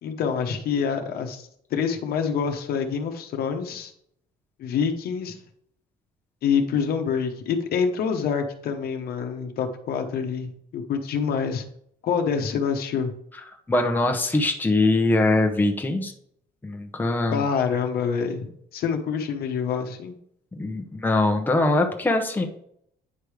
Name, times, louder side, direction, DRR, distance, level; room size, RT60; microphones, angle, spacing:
voice 1, 0.0-3.9 4.6-5.4 6.4-11.6 12.0-13.1 17.3-20.1, left 6 dB, 65° left, 5 dB, 1.0 m, -26 dB
voice 2, 13.7-16.1 16.6-17.4 20.6-22.5, left 2 dB, 10° left, 3 dB, 0.9 m, -22 dB
9.3 x 3.2 x 4.9 m, 0.70 s
cardioid pair, 110°, 17 cm